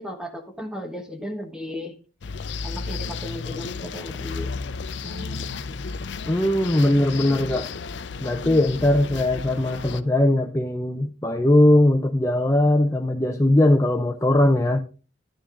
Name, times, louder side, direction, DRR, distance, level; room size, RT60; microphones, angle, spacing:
voice 1, 0.0-1.9 2.6-4.6 5.0-5.6, left 1 dB, 5° right, 4 dB, 1.2 m, -35 dB
sound 1, 2.2-10.0, left 4 dB, 75° left, 0.5 m, -33 dB
voice 2, 6.3-7.7 8.2-14.8, left 1 dB, 15° left, 4 dB, 0.5 m, -20 dB
13.0 x 10.0 x 2.5 m, 0.35 s
head